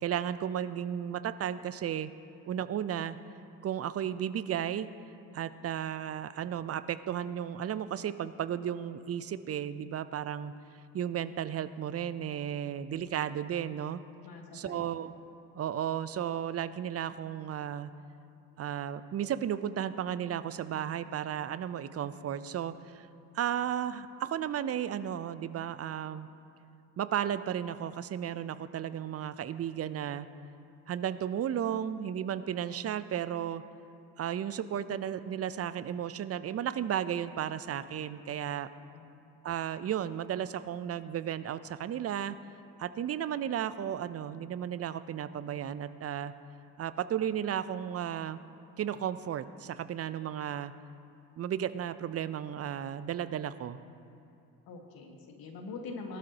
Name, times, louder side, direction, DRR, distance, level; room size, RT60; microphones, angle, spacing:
voice 1, 0.0-2.1 2.5-3.2 3.6-4.9 5.3-10.5 10.9-14.0 14.5-15.1 15.5-17.9 18.6-23.1 23.3-26.3 27.0-30.3 30.9-33.6 34.2-38.7 39.4-42.4 42.8-46.3 46.8-48.4 48.8-50.7 51.4-53.8, right 9 dB, 35° right, 14 dB, 0.6 m, -34 dB
voice 2, 14.2-14.9 38.9-39.1 54.7-56.2, left 3 dB, 50° left, 2 dB, 1.9 m, -43 dB
18.5 x 12.5 x 3.0 m, 2.7 s
hypercardioid pair, 55°, 44 cm